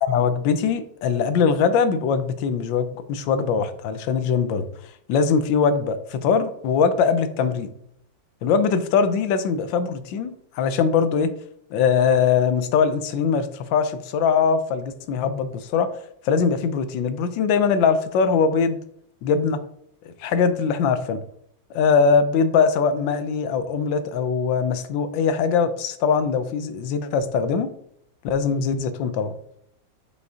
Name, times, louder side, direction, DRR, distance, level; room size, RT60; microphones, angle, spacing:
voice 1, 0.0-4.7 5.1-7.7 8.4-11.3 11.7-15.9 16.2-18.8 19.2-19.6 20.0-21.2 21.7-27.7 28.2-29.3, left 6 dB, 80° left, 11 dB, 1.4 m, -21 dB
8.0 x 5.1 x 2.8 m, 0.71 s
omnidirectional pair, 2.0 m